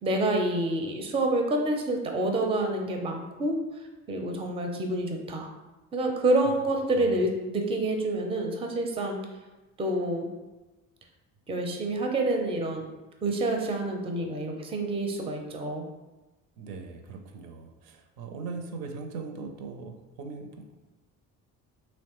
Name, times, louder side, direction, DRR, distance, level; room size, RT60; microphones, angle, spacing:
voice 1, 0.0-3.6 4.1-5.5 5.9-9.2 9.8-10.3 11.5-12.9 13.2-15.8, right 1 dB, 15° right, 3 dB, 0.4 m, -28 dB
voice 2, 16.6-20.7, right 4 dB, 75° right, 4 dB, 0.5 m, -40 dB
2.9 x 2.0 x 2.9 m, 1.1 s
hypercardioid pair, 60°, 42 cm